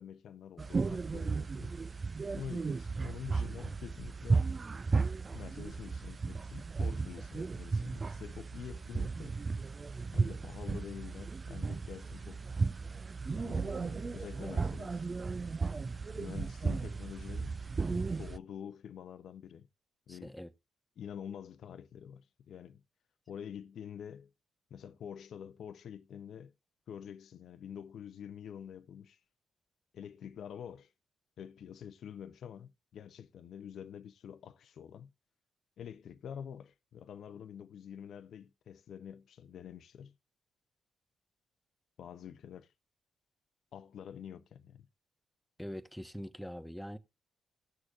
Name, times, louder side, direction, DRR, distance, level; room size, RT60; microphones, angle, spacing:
voice 1, 0.0-1.8 2.3-4.4 5.3-9.4 10.1-12.4 13.3-15.1 16.0-17.6 17.9-19.7 20.1-20.3 21.0-22.8 23.3-24.3 24.7-26.5 26.9-29.2 29.9-30.9 31.4-35.1 35.8-40.1 42.0-42.7 43.7-44.9, left 8 dB, 70° left, 0.5 m, -47 dB
sound 1, 0.6-18.4, right 4 dB, 40° right, 0.4 m, -35 dB
voice 2, 20.1-20.5 45.6-47.0, equal, ahead, 1.1 m, -43 dB
18.0 x 6.3 x 2.4 m
hypercardioid pair, 45°, 0 cm